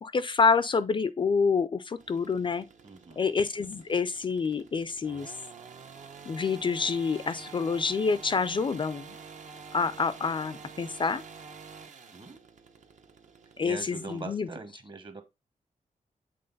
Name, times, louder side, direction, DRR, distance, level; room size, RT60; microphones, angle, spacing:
voice 1, 0.0-2.7 3.2-5.3 6.2-9.2 9.7-11.2 13.6-14.5, left 5 dB, 35° left, 0.4 m, -27 dB
sound 1, 2.0-14.3, right 5 dB, 65° right, 0.8 m, -48 dB
voice 2, 2.8-3.3 12.1-12.5 13.6-15.2, right 4 dB, 35° right, 1.0 m, -42 dB
7.8 x 3.6 x 3.9 m
wide cardioid pair, 135°, 14 cm